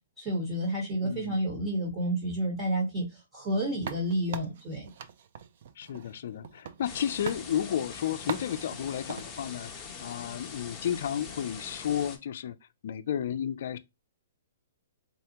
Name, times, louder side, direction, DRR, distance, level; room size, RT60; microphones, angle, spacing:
voice 1, 0.2-4.9, right 1 dB, 25° right, 1.1 m, -30 dB
voice 2, 1.0-1.4 5.8-12.6 12.8-13.8, left 9 dB, 60° left, 0.3 m, -32 dB
sound 1, 3.8-7.0 7.3-7.5 8.3-9.3, right 8 dB, 55° right, 0.4 m, -41 dB
sound 2, 6.8-12.2, left 5 dB, 15° left, 0.9 m, -43 dB
4.0 x 2.1 x 2.8 m
hypercardioid pair, 145°, 0 cm